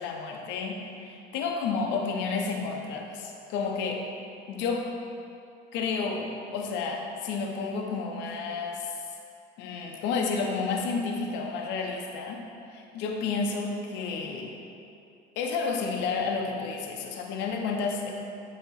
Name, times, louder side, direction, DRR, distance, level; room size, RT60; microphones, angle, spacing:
voice 1, 0.0-4.0 4.5-4.9 5.7-9.0 9.6-14.6 15.4-18.1, left 4 dB, 75° left, 1 dB, 0.6 m, -31 dB
8.2 x 2.9 x 4.0 m, 2.6 s
supercardioid pair, 95°, 19 cm